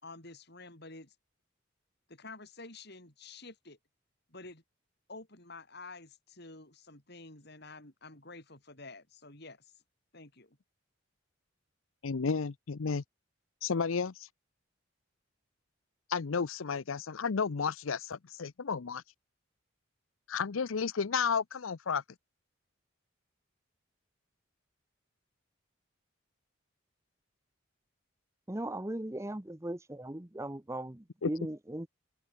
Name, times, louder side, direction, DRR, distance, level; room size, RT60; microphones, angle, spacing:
voice 1, 0.0-1.2 2.1-3.8 4.3-4.6 5.1-9.7 10.1-10.6, left 3 dB, 55° left, 5.0 m, -49 dB
voice 2, 12.0-13.0 13.6-14.3 16.1-19.0 20.3-22.0 31.2-31.3, left 5 dB, 80° left, 0.6 m, -32 dB
voice 3, 28.5-31.9, right 1 dB, 15° right, 0.8 m, -38 dB
open air
head